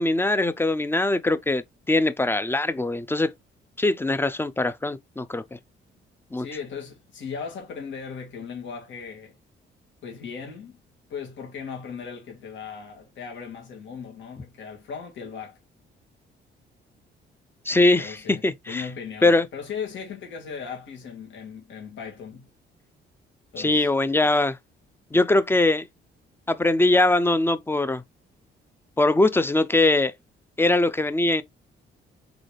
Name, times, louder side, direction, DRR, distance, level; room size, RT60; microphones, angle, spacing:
voice 1, 0.0-3.3 3.8-5.6 6.3-6.5 17.7-18.9 19.2-19.5 23.6-24.6 25.1-25.9 26.5-28.0 29.0-30.1 30.6-31.4, left 2 dB, 10° left, 0.5 m, -22 dB
voice 2, 6.4-9.3 10.0-10.8 11.1-15.6 18.0-18.4 18.7-22.5 23.5-23.9, left 6 dB, 70° left, 2.0 m, -37 dB
4.0 x 3.9 x 3.4 m
cardioid pair, 90°, 20 cm